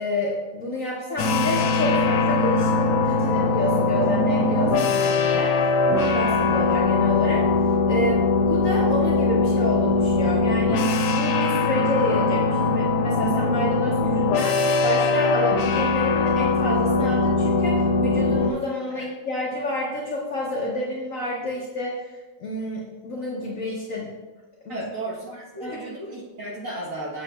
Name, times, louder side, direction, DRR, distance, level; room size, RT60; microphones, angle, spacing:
voice 1, 0.0-7.5 7.9-24.1 24.6-24.8 25.6-25.8, left 2 dB, 55° left, -4 dB, 1.0 m, -29 dB
sound 1, 1.2-18.5, left 3 dB, 90° left, 1.4 m, -21 dB
voice 2, 24.7-27.2, right 2 dB, 50° right, -5 dB, 1.3 m, -34 dB
7.7 x 6.7 x 2.3 m, 1.2 s
omnidirectional pair, 2.2 m